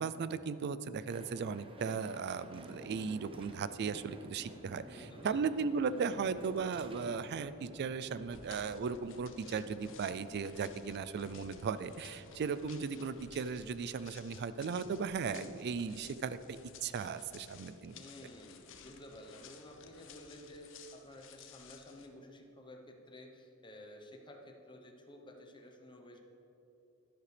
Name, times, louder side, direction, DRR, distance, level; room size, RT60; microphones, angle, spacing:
voice 1, 0.0-17.9, right 5 dB, 50° right, 14 dB, 0.3 m, -37 dB
Train, 1.1-13.6, right 1 dB, 25° right, 0.8 m, -53 dB
voice 2, 4.8-5.5 17.9-26.2, left 1 dB, 20° left, 2 dB, 1.0 m, -53 dB
sound 1, 8.3-22.1, left 7 dB, 60° left, 0.7 m, -56 dB
11.0 x 11.0 x 3.4 m, 2.9 s
head